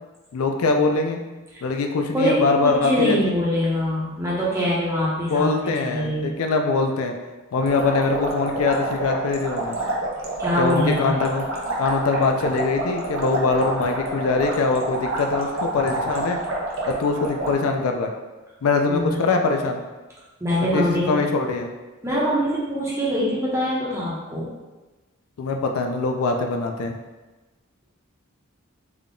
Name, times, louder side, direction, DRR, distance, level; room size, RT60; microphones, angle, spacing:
voice 1, 0.3-1.2 1.6-3.2 5.3-7.1 7.5-9.8 10.6-11.4 11.8-16.4 16.9-18.1 18.6-19.8 20.7-21.7 25.4-27.0, left 3 dB, 85° left, 4 dB, 0.4 m, -22 dB
voice 2, 2.1-6.3 10.4-11.1 18.9-19.2 20.4-21.1 22.0-24.5, equal, 15° right, -7 dB, 0.8 m, -23 dB
sound 1, 7.6-17.5, right 1 dB, 65° right, 0.8 m, -28 dB
3.5 x 2.2 x 3.7 m, 1.2 s
head